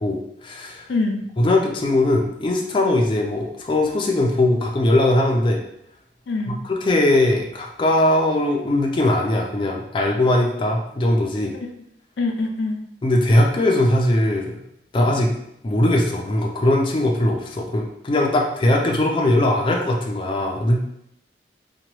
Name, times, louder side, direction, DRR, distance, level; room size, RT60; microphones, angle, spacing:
voice 1, 0.0-0.8 1.4-5.6 6.5-11.5 13.0-14.6 14.9-15.3 15.6-20.8, left 1 dB, 30° left, 0 dB, 0.4 m, -20 dB
voice 2, 0.9-1.2 6.3-6.5 11.6-11.7 12.2-12.8, left 3 dB, 85° left, 2 dB, 0.5 m, -24 dB
2.8 x 2.2 x 3.0 m, 0.77 s
head